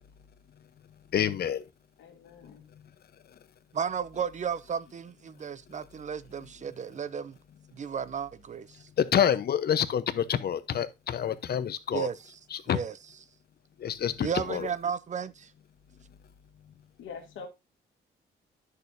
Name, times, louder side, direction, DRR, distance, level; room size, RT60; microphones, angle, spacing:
voice 1, 1.1-1.6 9.0-12.1 12.5-12.8 13.8-14.7, left 9 dB, 55° left, 0.9 m, -27 dB
voice 2, 2.0-2.7 17.0-17.5, left 5 dB, 80° left, 2.2 m, -44 dB
voice 3, 3.7-7.4 7.8-8.7 11.9-12.4 12.7-13.0 14.2-15.5, right 7 dB, 35° right, 0.6 m, -33 dB
10.0 x 6.7 x 2.7 m
cardioid pair, 90°, 20 cm